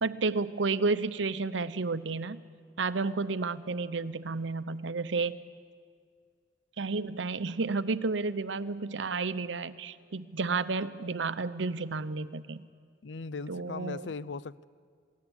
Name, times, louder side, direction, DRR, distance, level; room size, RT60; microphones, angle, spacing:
voice 1, 0.0-2.4 2.8-5.4 6.8-12.7 13.5-14.1, right 3 dB, 90° right, 15 dB, 0.8 m, -31 dB
voice 2, 13.0-14.7, left 4 dB, 75° left, 18 dB, 0.6 m, -38 dB
21.0 x 17.5 x 9.8 m, 2.1 s
head